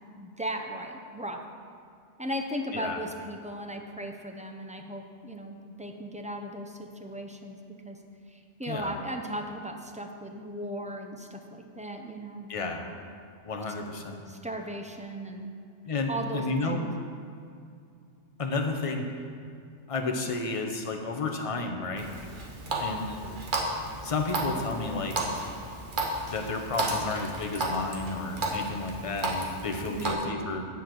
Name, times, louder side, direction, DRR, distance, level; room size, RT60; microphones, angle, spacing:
voice 1, 0.2-1.4 2.2-7.6 7.8-8.0 8.3-12.5 14.3-15.5 16.1-16.9 29.9-30.2, right 1 dB, 10° right, 3 dB, 0.4 m, -37 dB
voice 2, 12.5-12.8 13.4-14.2 15.9-16.8 18.4-19.1 19.9-22.1 22.8-23.2 24.0-25.3 26.3-30.7, left 3 dB, 35° left, 4 dB, 0.8 m, -31 dB
Water tap faucet, 22.0-30.1, right 1 dB, 45° right, 1.3 m, -33 dB
10.5 x 4.4 x 7.6 m, 2.3 s
omnidirectional pair, 1.2 m